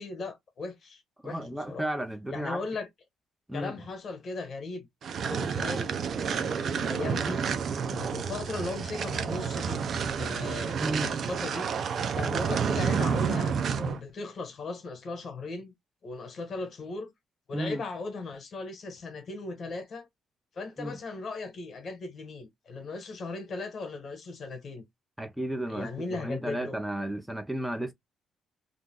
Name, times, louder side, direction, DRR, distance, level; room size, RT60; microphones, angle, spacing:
voice 1, 0.0-1.9 2.3-2.9 3.5-4.9 5.2-7.4 7.8-9.8 10.1-11.7 12.1-15.7 16.0-17.1 17.5-20.1 20.5-24.8 25.7-26.8, left 3 dB, 55° left, 1.2 m, -37 dB
voice 2, 1.2-2.6 3.5-3.7 10.8-11.1 17.5-17.8 20.8-21.0 25.2-27.9, right 1 dB, 5° right, 0.7 m, -33 dB
sound 1, 5.0-14.0, right 6 dB, 60° right, 0.6 m, -30 dB
2.6 x 2.4 x 3.7 m
cardioid pair, 90°, 0 cm